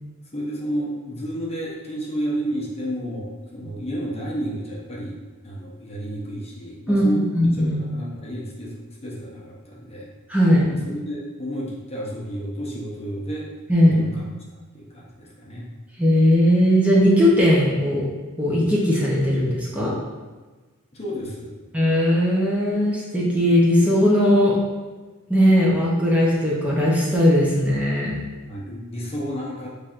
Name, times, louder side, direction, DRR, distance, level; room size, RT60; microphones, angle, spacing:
voice 1, 0.3-7.2 7.7-10.1 10.7-13.5 13.9-14.2 14.7-15.6 20.9-21.6 28.4-29.7, equal, 30° left, -4 dB, 0.8 m, -31 dB
voice 2, 7.3-7.7 10.3-10.6 13.7-14.0 16.0-18.0 18.4-19.9 21.7-24.6 25.3-28.1, equal, 5° right, -6 dB, 0.7 m, -18 dB
5.9 x 3.2 x 2.5 m, 1.3 s
head